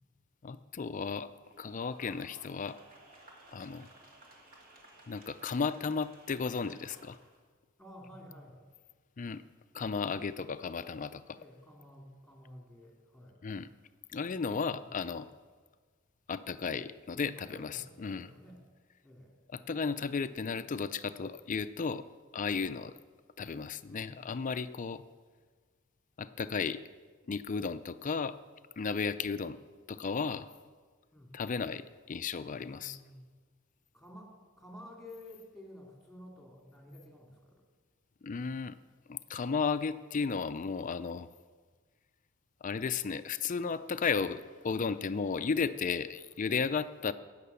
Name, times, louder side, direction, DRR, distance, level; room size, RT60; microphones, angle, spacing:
voice 1, 0.4-1.3 1.6-2.8 3.5-3.9 5.1-7.2 9.2-9.4 9.7-11.2 13.4-13.7 14.1-15.3 16.3-18.3 19.5-22.0 22.3-23.0 23.4-25.0 26.2-26.8 27.3-28.4 28.8-29.6 29.9-30.5 31.3-33.0 38.2-38.8 39.1-41.3 42.6-47.1, left 5 dB, 40° left, 12 dB, 0.4 m, -34 dB
sound 1, 1.4-7.4, right 1 dB, 45° right, 2.4 m, -57 dB
voice 2, 7.8-8.6 11.3-13.4 14.8-15.2 17.4-18.6 19.0-19.4 23.9-24.5 31.1-31.4 32.6-33.2 33.9-37.6, left 1 dB, ahead, 0 dB, 2.7 m, -52 dB
18.0 x 6.7 x 6.9 m, 1.5 s
head